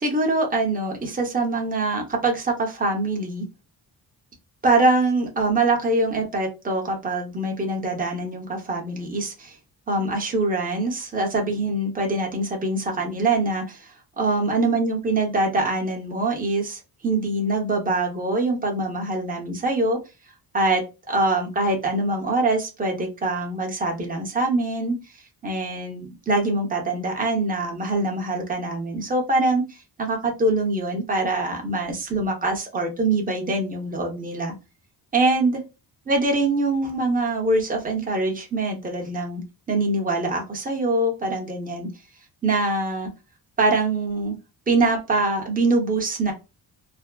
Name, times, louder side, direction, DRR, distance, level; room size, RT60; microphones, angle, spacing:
voice 1, 0.0-3.5 4.6-9.6 9.9-20.0 20.5-25.0 25.4-34.5 35.1-35.6 36.1-39.4 39.7-41.9 42.4-43.1 43.6-44.4 44.7-46.3, right 2 dB, 20° right, 1 dB, 0.8 m, -24 dB
3.4 x 2.0 x 2.3 m, 0.27 s
wide cardioid pair, 130°, 43 cm